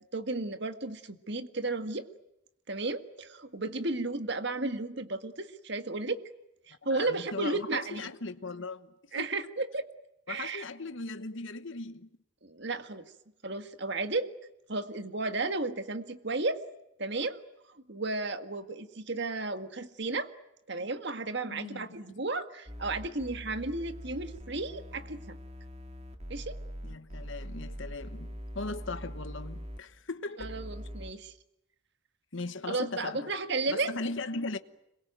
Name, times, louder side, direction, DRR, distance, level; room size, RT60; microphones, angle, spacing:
voice 1, 0.0-2.1 2.7-6.2 6.7-8.1 9.1-9.9 10.3-10.6 12.4-13.1 13.4-14.3 14.7-16.6 17.0-17.4 17.7-20.3 20.7-25.4 26.3-26.6 30.4-31.3 32.7-33.9, right 3 dB, 55° right, 1.8 m, -33 dB
voice 2, 6.8-9.2 10.3-12.1 21.5-21.9 26.8-30.6 32.3-33.3 33.7-34.6, left 3 dB, 60° left, 1.2 m, -38 dB
sound 1, 22.7-29.8 30.4-31.1, equal, 30° right, 2.2 m, -42 dB
26.5 x 22.5 x 9.2 m
head